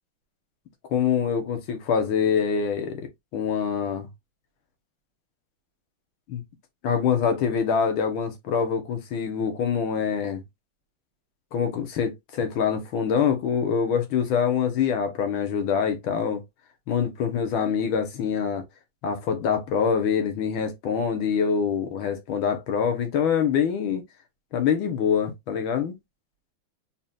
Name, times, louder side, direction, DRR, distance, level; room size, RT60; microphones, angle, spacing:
voice 1, 0.9-4.1 6.3-6.4 6.8-10.4 11.5-16.4 16.9-18.6 19.0-24.0 24.5-26.0, left 7 dB, 85° left, 1.8 m, -25 dB
4.1 x 3.9 x 2.4 m
omnidirectional pair, 2.2 m